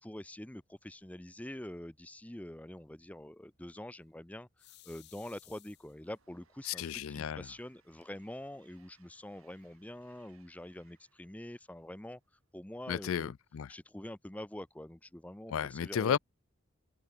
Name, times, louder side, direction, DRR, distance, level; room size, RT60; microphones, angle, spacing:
voice 1, 0.0-13.3 13.7-16.2, left 1 dB, 5° left, 0.5 m, -46 dB
sound 1, 4.6-6.2 6.9-7.0 7.4-7.5 7.8-8.4, left 16 dB, 50° left, 0.9 m, -59 dB
Train, 5.0-12.5, right 7 dB, 90° right, 5.0 m, -72 dB
voice 2, 6.6-7.5 12.9-13.7 15.5-16.2, left 8 dB, 80° left, 0.4 m, -33 dB
open air
head